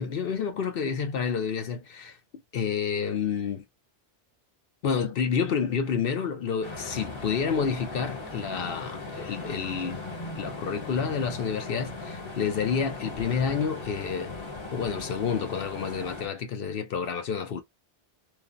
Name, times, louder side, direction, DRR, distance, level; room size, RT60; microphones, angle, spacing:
voice 1, 0.0-2.2 2.5-3.6 4.8-10.0 10.4-14.3 14.7-17.6, left 6 dB, 70° left, 0.8 m, -29 dB
sound 1, 6.6-16.3, left 2 dB, 30° left, 0.8 m, -38 dB
3.1 x 2.0 x 2.5 m
omnidirectional pair, 1.0 m